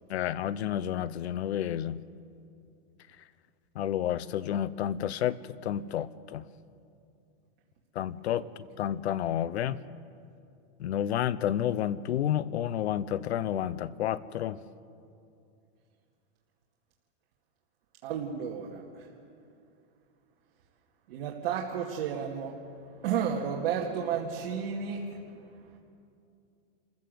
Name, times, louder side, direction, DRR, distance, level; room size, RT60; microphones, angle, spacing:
voice 1, 0.1-2.0 3.7-6.4 7.9-8.5 8.8-9.8 10.8-14.6, left 11 dB, 90° left, 18 dB, 0.8 m, -30 dB
voice 2, 18.0-19.1 21.1-22.6 23.0-25.4, right 7 dB, 60° right, -2 dB, 2.2 m, -32 dB
28.0 x 15.0 x 7.7 m, 2.6 s
supercardioid pair, 155°, 32 cm